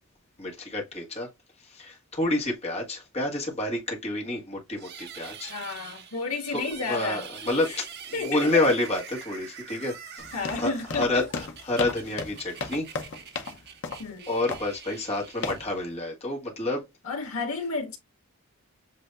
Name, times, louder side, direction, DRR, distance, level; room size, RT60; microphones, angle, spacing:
voice 1, 0.4-1.3 1.6-5.5 6.5-7.8 8.2-12.9 14.3-16.8, left 2 dB, 30° left, 1.5 m, -29 dB
sound 1, 4.8-16.1, right 8 dB, 50° right, 0.9 m, -45 dB
voice 2, 5.5-7.8 8.1-8.7 10.3-11.3 14.0-14.3 17.0-18.0, left 3 dB, 85° left, 1.8 m, -32 dB
sound 2, 10.2-13.6 13.8-14.1 14.5-14.8 15.4-15.7, left 3 dB, 60° left, 0.8 m, -34 dB
7.6 x 2.7 x 2.5 m
head